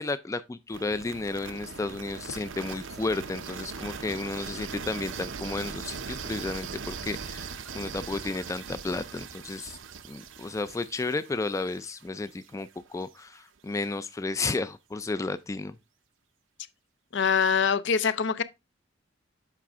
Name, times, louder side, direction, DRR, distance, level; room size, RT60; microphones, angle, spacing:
voice 1, 0.0-9.8 10.1-15.8, left 3 dB, 15° left, 0.3 m, -33 dB
sound 1, 0.7-12.6, right 5 dB, 90° right, 0.7 m, -40 dB
voice 2, 17.1-18.4, left 6 dB, 70° left, 0.6 m, -24 dB
7.5 x 5.0 x 3.4 m
head